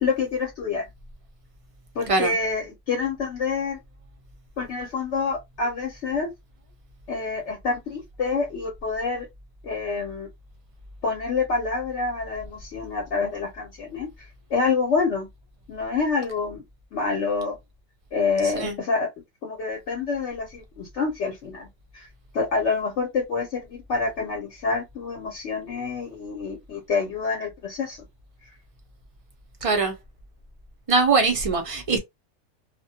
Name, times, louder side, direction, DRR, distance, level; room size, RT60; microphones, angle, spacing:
voice 1, 0.0-0.9 1.9-3.8 4.6-6.3 7.1-9.3 9.6-10.3 11.0-15.3 15.7-16.6 16.9-17.5 18.1-19.1 19.4-21.7 21.9-22.1 22.3-28.0, left 4 dB, 60° left, 0.9 m, -27 dB
voice 2, 18.4-18.8 29.6-29.9 30.9-32.0, right 4 dB, 50° right, 0.4 m, -22 dB
2.3 x 2.1 x 2.7 m
omnidirectional pair, 1.5 m